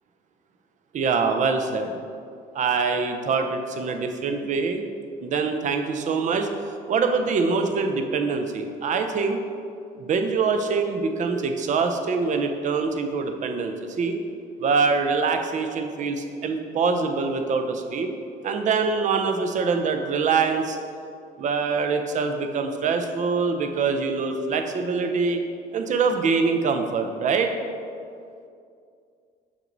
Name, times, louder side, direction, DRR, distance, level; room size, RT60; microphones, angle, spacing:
voice 1, 0.9-1.9 2.5-4.8 5.2-6.5 6.9-9.4 10.0-14.2 14.6-18.1 18.4-20.8 21.4-25.4 25.7-27.5, right 4 dB, 45° right, 6 dB, 0.6 m, -24 dB
6.1 x 5.9 x 3.9 m, 2.4 s
cardioid pair, 110°, 17 cm